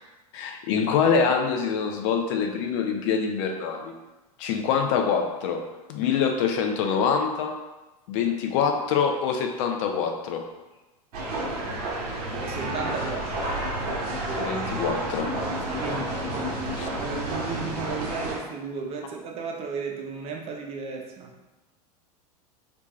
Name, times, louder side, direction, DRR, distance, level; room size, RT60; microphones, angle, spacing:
voice 1, 0.3-4.0 4.4-5.6 5.9-7.5 8.1-10.4 14.4-15.3 16.8-16.9, left 6 dB, 50° left, 4 dB, 0.4 m, -25 dB
sound 1, 11.1-18.4, right 1 dB, 65° right, 0.9 m, -30 dB
voice 2, 12.4-13.5 15.6-16.6 17.0-21.3, right 5 dB, 30° right, 1 dB, 0.4 m, -35 dB
2.5 x 2.2 x 2.9 m, 1.1 s
hypercardioid pair, 90°, 20 cm